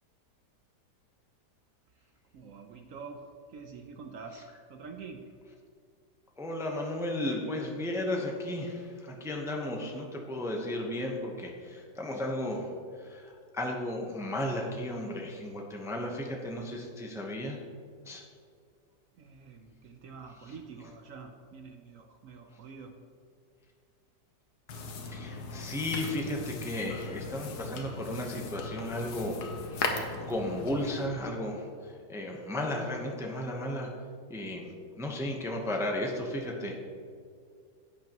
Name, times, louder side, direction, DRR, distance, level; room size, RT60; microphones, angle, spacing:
voice 1, 2.0-5.2 19.2-22.9, right 5 dB, 65° right, 5 dB, 0.8 m, -47 dB
voice 2, 6.4-12.7 13.0-17.6 18.0-18.2 25.0-29.4 29.7-33.9 34.3-34.7 35.0-36.7, left 1 dB, 5° right, 0 dB, 0.5 m, -34 dB
sound 1, 24.7-31.1, left 3 dB, 65° left, 1.4 m, -38 dB
11.0 x 8.5 x 3.0 m, 2.2 s
omnidirectional pair, 1.9 m